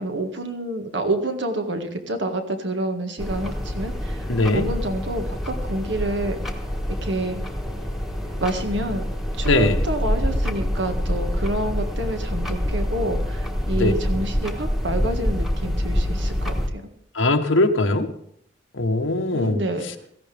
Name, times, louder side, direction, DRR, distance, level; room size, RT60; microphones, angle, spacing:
voice 1, 0.0-6.4 7.0-7.4 8.4-9.0 9.4-16.9 19.3-19.9, right 1 dB, 65° right, 1.8 m, -28 dB
sound 1, 3.2-16.7, equal, ahead, 1.5 m, -26 dB
voice 2, 4.3-4.7 9.4-9.8 13.7-13.9 17.1-18.1 18.7-19.6, left 2 dB, 80° left, 1.1 m, -20 dB
17.0 x 15.0 x 3.5 m
head